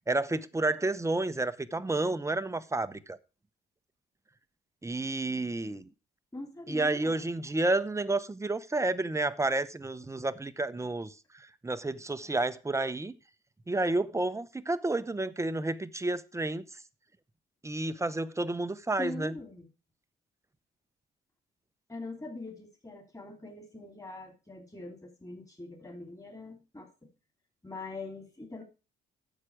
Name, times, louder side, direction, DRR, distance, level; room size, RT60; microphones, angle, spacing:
voice 1, 0.1-3.2 4.8-5.9 6.7-13.1 13.7-16.6 17.6-19.3, right 2 dB, 15° right, 0.8 m, -30 dB
voice 2, 6.3-7.4 19.0-19.7 21.9-26.9 27.6-28.6, left 2 dB, 15° left, 3.1 m, -43 dB
9.8 x 7.5 x 4.8 m
cardioid pair, 90°, 20 cm